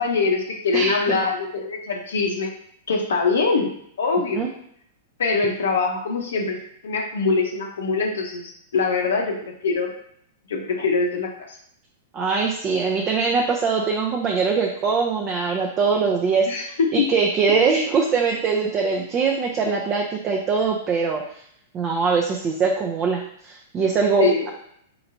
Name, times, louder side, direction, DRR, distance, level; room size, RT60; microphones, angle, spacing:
voice 1, 0.0-2.5 2.9-3.7 4.0-4.5 5.2-6.6 6.8-9.9 10.5-11.6 16.5-17.0 24.2-24.5, left 4 dB, 65° left, 1 dB, 0.7 m, -23 dB
voice 2, 0.7-1.2 4.3-4.5 12.1-21.2 21.7-24.5, right 5 dB, 30° right, 0 dB, 0.6 m, -22 dB
4.5 x 3.9 x 2.6 m, 0.70 s
figure-of-eight pair, 100°, 0 cm